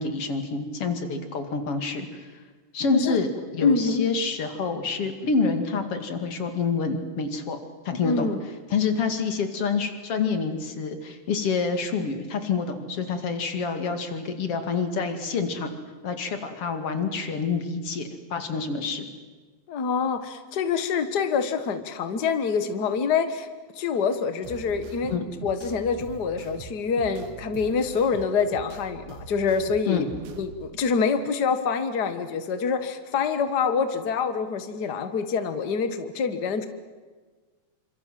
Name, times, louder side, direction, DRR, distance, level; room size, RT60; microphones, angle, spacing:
voice 1, 0.0-2.3 2.7-7.6 7.8-8.3 8.7-15.7 16.0-19.1 25.1-25.2 29.9-30.1, left 4 dB, 45° left, 7 dB, 2.9 m, -27 dB
voice 2, 3.6-4.1 8.0-8.4 19.7-23.5 23.7-25.1 25.4-30.1 30.4-36.7, left 5 dB, 75° left, 10 dB, 0.9 m, -26 dB
sound 1, 24.4-30.7, right 5 dB, 90° right, 3.7 m, -43 dB
27.0 x 26.0 x 7.7 m, 1.4 s
omnidirectional pair, 4.3 m